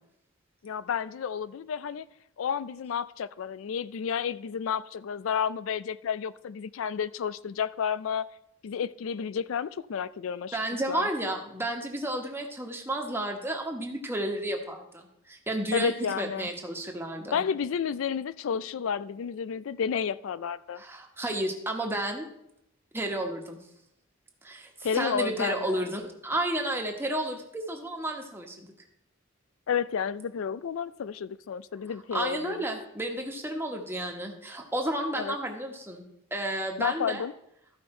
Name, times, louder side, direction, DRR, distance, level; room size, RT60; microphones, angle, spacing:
voice 1, 0.6-2.1 2.4-8.3 8.6-10.6 10.9-11.1 15.7-16.5 17.3-20.8 24.8-25.8 29.7-32.6 35.1-35.4 36.8-37.3, left 7 dB, 75° left, 0.4 m, -31 dB
voice 2, 10.5-17.4 20.8-22.3 22.9-23.6 24.4-28.7 32.1-36.0 36.3-37.2, right 1 dB, 10° right, 1.2 m, -32 dB
13.5 x 5.4 x 4.4 m
head